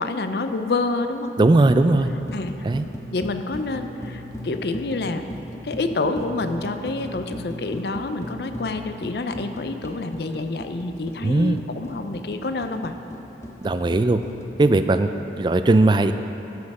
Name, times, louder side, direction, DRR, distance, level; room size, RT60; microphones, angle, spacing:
voice 1, 0.0-1.3 2.3-2.7 3.1-5.3 5.6-12.9 15.1-15.3, left 3 dB, 65° left, 8 dB, 0.5 m, -28 dB
voice 2, 1.4-2.1 2.6-2.9 11.2-11.6 13.6-14.2 14.6-15.1 15.4-16.1, right 2 dB, 25° right, 9 dB, 0.3 m, -18 dB
sound 1, 1.5-15.1, equal, 15° left, 0.6 m, -38 dB
13.0 x 6.4 x 4.8 m, 3.0 s
head